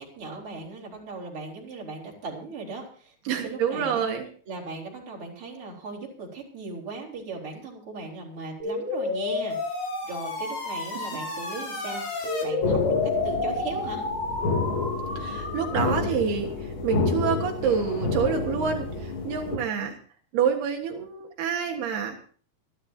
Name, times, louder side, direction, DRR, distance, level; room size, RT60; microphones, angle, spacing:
voice 1, 0.0-4.1 4.5-13.0 13.2-14.0, right 3 dB, 35° right, -1 dB, 4.6 m, -38 dB
voice 2, 3.3-4.3 11.0-11.1 15.2-16.5 16.8-20.0 20.3-22.2, right 7 dB, 80° right, 2 dB, 3.6 m, -27 dB
sound 1, 8.6-16.1, left 3 dB, 60° left, 6.1 m, -30 dB
sound 2, 12.6-19.6, left 4 dB, 35° left, 2.6 m, -29 dB
25.5 x 12.0 x 2.7 m, 0.43 s
omnidirectional pair, 4.5 m